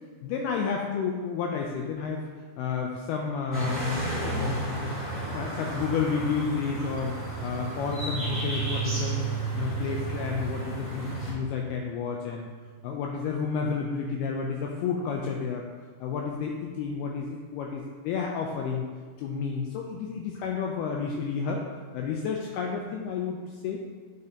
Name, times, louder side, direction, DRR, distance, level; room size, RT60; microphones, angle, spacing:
voice 1, 0.2-2.2 2.6-4.9 5.3-7.2 7.4-9.2 9.5-12.5 12.8-15.7 16.0-18.9 19.2-21.7 21.9-23.4 23.6-23.8, left 5 dB, 90° left, 1 dB, 2.3 m, -31 dB
sound 1, 3.5-11.3, right 3 dB, 20° right, 2.0 m, -32 dB
8.6 x 8.3 x 2.9 m, 1.5 s
omnidirectional pair, 5.2 m